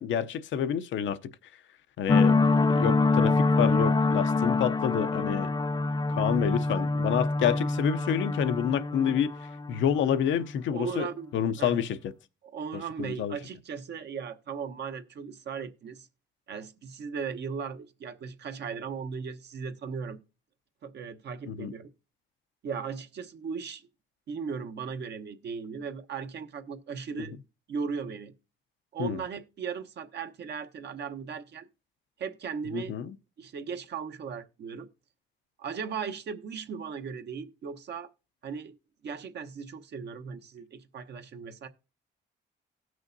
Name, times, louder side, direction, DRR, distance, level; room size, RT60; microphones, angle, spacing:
voice 1, 0.0-1.3 2.0-5.5 6.1-9.4 9.7-11.1 11.3-12.0 12.7-13.4 21.5-21.7 29.0-29.2 32.7-33.1, left 9 dB, 75° left, 0.7 m, -28 dB
sound 1, 2.1-10.5, left 3 dB, 20° left, 0.4 m, -25 dB
voice 2, 10.7-11.8 12.4-16.1 16.5-20.2 20.8-21.9 22.6-23.9 24.3-27.3 27.7-28.3 28.9-31.7 32.2-32.9 33.4-34.9 35.6-38.1 38.4-38.8 39.0-41.7, right 6 dB, 60° right, 1.0 m, -37 dB
18.0 x 6.3 x 2.6 m
cardioid pair, 90°, 20 cm